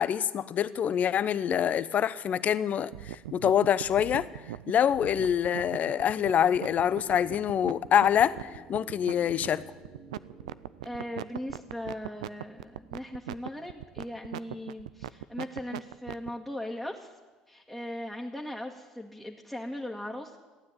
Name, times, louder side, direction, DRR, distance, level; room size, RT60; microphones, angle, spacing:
voice 1, 0.0-4.3 4.7-9.6, left 9 dB, 50° left, 16 dB, 0.7 m, -26 dB
sound 1, 2.9-16.3, right 13 dB, 85° right, 0.4 m, -39 dB
sound 2, 6.6-12.7 12.9-13.0, right 1 dB, 60° right, 4.3 m, -53 dB
voice 2, 10.8-17.1 17.5-20.4, left 1 dB, 5° left, -1 dB, 1.8 m, -38 dB
15.5 x 9.6 x 9.6 m, 1.3 s
hypercardioid pair, 65°, 3 cm